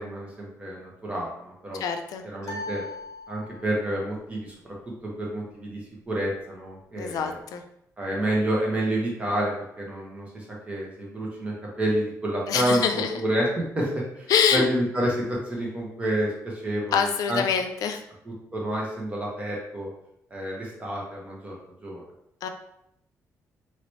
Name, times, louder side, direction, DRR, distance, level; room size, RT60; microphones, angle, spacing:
voice 1, 0.0-1.8 2.2-2.8 3.3-4.7 5.0-5.8 6.1-7.4 8.0-12.8 13.2-13.5 13.7-17.4 18.2-19.9 20.3-21.5 21.8-22.0, right 1 dB, 20° right, -3 dB, 1.0 m, -29 dB
voice 2, 1.7-2.2 7.0-7.6 12.5-13.1 14.3-14.6 16.9-18.0 22.4-22.5, left 7 dB, 80° left, 6 dB, 0.4 m, -25 dB
sound 1, 2.4-3.9, left 2 dB, 55° left, 0.8 m, -38 dB
2.9 x 2.9 x 3.1 m, 0.77 s
cardioid pair, 135°, 6 cm